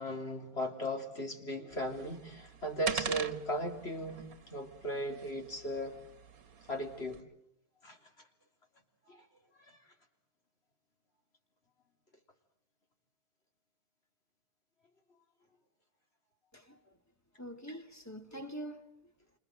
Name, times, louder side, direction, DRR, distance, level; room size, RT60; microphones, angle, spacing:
voice 1, 0.0-4.2 4.5-6.0 6.7-7.2 7.8-8.0 9.1-9.3 9.6-9.8, equal, 40° left, 3.5 m, -37 dB
sound 1, 1.7-7.2, right 7 dB, 65° right, 1.7 m, -43 dB
voice 2, 16.5-17.0 17.4-19.1, right 1 dB, 10° left, 2.0 m, -45 dB
29.5 x 26.0 x 7.8 m
omnidirectional pair, 1.6 m